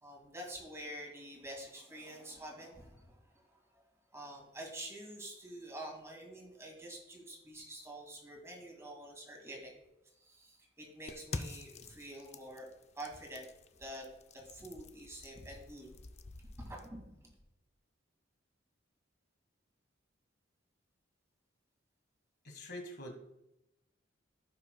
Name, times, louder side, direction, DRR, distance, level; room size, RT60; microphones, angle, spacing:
voice 1, 0.0-3.8 4.1-9.7 10.2-12.7 13.0-13.5 13.8-14.1 14.3-15.9 16.6-17.1, right 1 dB, 15° right, 0 dB, 2.1 m, -47 dB
sound 1, 11.1-16.9, left 3 dB, 35° left, 0.5 m, -48 dB
voice 2, 22.4-23.1, left 1 dB, 60° left, 3 dB, 1.6 m, -45 dB
15.5 x 5.7 x 2.3 m, 0.89 s
head